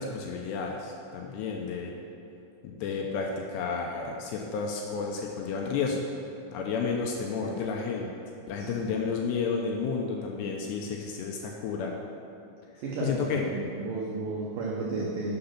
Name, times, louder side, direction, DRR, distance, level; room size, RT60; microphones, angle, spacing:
voice 1, 0.0-1.9 2.8-6.0 6.5-8.1 8.5-11.9 13.0-13.4, left 5 dB, 80° left, 0 dB, 2.6 m, -31 dB
voice 2, 12.8-15.4, right 3 dB, 80° right, -3 dB, 1.9 m, -33 dB
10.5 x 6.8 x 5.9 m, 2.6 s
omnidirectional pair, 5.5 m